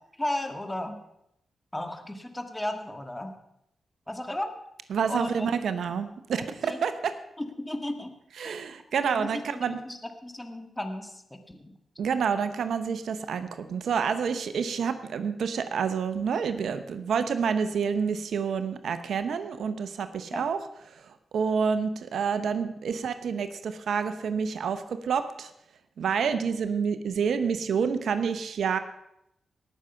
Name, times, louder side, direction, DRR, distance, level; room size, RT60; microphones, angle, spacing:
voice 1, 0.2-1.0 1.7-3.3 4.1-4.5 5.1-5.5 6.6-6.8 7.4-8.1 8.4-8.6 9.1-11.2 11.5-11.7 20.3-20.5, left 1 dB, 15° left, 6 dB, 1.6 m, -34 dB
voice 2, 4.9-7.2 8.4-9.8 12.0-20.6 20.9-21.0 21.3-25.5 26.0-28.8, right 6 dB, 80° right, 11 dB, 0.8 m, -28 dB
18.5 x 6.4 x 5.7 m, 0.81 s
cardioid pair, 55°, 0 cm